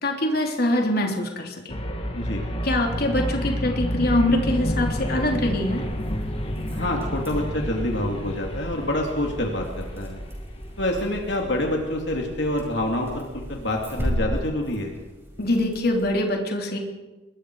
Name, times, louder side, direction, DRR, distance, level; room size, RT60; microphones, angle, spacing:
voice 1, 0.0-1.8 2.6-5.8 15.4-16.8, left 1 dB, 55° left, 2 dB, 3.3 m, -24 dB
sound 1, 1.7-11.6, equal, 30° left, 2.1 m, -30 dB
sound 2, 4.6-16.2, equal, 15° right, 5.5 m, -36 dB
voice 2, 6.7-10.2 10.8-14.9, left 1 dB, 70° left, 1 dB, 2.8 m, -27 dB
26.0 x 22.0 x 4.8 m, 1.2 s
head